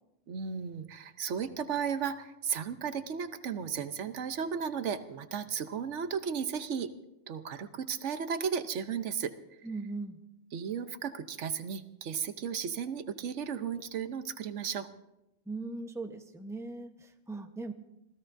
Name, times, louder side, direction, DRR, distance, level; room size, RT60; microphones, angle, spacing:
voice 1, 0.3-6.9 7.3-9.3 10.5-14.9, right 7 dB, 90° right, 10 dB, 1.2 m, -34 dB
voice 2, 9.6-10.2 15.5-17.7, right 3 dB, 5° right, 5 dB, 0.8 m, -39 dB
26.5 x 16.5 x 2.6 m, 0.89 s
omnidirectional pair, 1.2 m